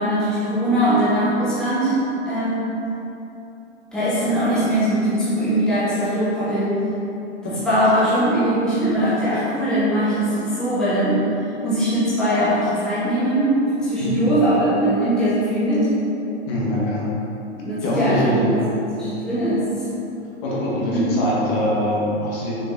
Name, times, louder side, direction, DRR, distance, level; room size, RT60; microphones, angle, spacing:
voice 1, 0.0-2.0 2.3-2.7 3.9-6.8 7.4-11.2 11.6-15.9 17.6-18.6 19.0-19.7 20.9-21.1, right 1 dB, ahead, -12 dB, 1.1 m, -21 dB
voice 2, 16.5-17.1 17.8-18.6 20.4-22.6, equal, 35° left, -6 dB, 1.5 m, -23 dB
6.4 x 3.9 x 3.8 m, 2.9 s
hypercardioid pair, 140°, 35 cm